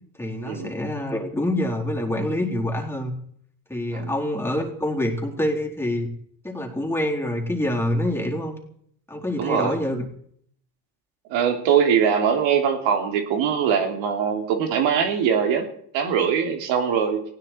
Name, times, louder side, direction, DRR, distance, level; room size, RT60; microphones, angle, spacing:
voice 1, 0.2-3.1 3.7-6.1 6.4-8.6 9.1-10.1, left 1 dB, 5° left, 0 dB, 4.0 m, -26 dB
voice 2, 9.4-9.8 11.3-15.7 15.9-17.2, right 7 dB, 65° right, 5 dB, 3.1 m, -22 dB
19.5 x 16.0 x 4.5 m, 0.65 s
supercardioid pair, 100°, 50 cm